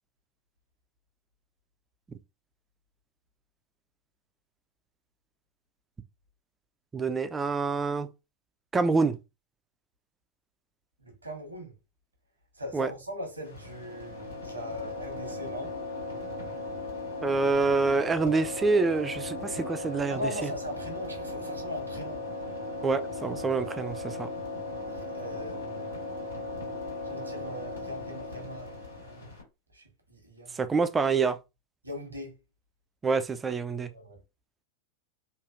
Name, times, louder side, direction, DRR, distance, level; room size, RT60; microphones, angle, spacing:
voice 1, 6.9-8.1 8.7-9.2 12.7-12.9 17.2-20.5 22.8-24.3 30.5-31.4 33.0-33.9, right 4 dB, 15° right, 0.3 m, -26 dB
voice 2, 11.0-11.7 12.5-15.7 20.1-22.2 24.9-25.9 27.0-28.7 29.0-29.2 29.7-29.8 30.1-30.6 31.8-32.4 33.9-34.2, left 1 dB, 85° right, 1.1 m, -40 dB
sound 1, 13.4-29.4, left 2 dB, 85° left, 1.5 m, -37 dB
3.2 x 2.4 x 2.4 m
figure-of-eight pair, 90°, 0 cm